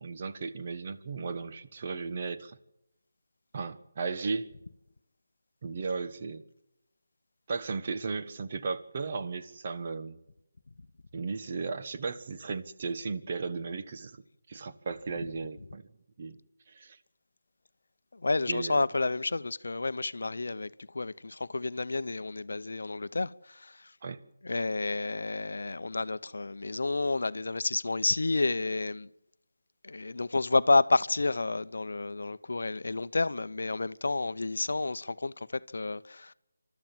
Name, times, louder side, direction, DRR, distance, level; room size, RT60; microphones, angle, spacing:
voice 1, 0.0-2.6 3.5-4.5 5.6-6.4 7.5-10.2 11.1-14.2 14.5-15.8 16.2-16.4 16.7-17.0 18.5-18.8 24.0-24.2, right 4 dB, 40° right, 1.4 m, -35 dB
voice 2, 18.1-23.9 24.4-29.1 29.8-36.3, left 3 dB, 65° left, 0.7 m, -30 dB
29.0 x 13.0 x 7.6 m
figure-of-eight pair, 160°, 0 cm